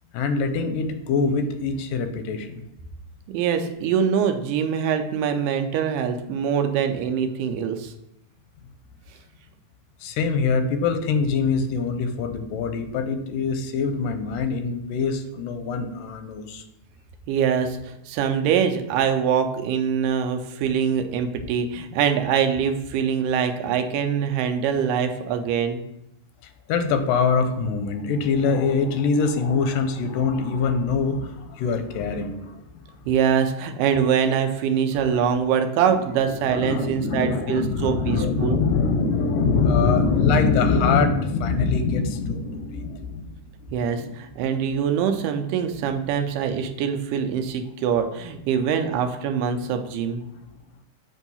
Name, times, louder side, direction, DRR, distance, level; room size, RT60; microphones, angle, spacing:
voice 1, 0.1-2.6 10.0-16.6 26.7-32.6 35.1-35.3 36.3-43.4 43.8-44.1, left 4 dB, 85° left, 8 dB, 2.2 m, -23 dB
voice 2, 3.3-7.9 17.3-25.8 33.1-38.6 43.7-50.2, right 7 dB, 85° right, 6 dB, 2.2 m, -24 dB
7.9 x 2.7 x 5.4 m, 0.85 s
omnidirectional pair, 3.8 m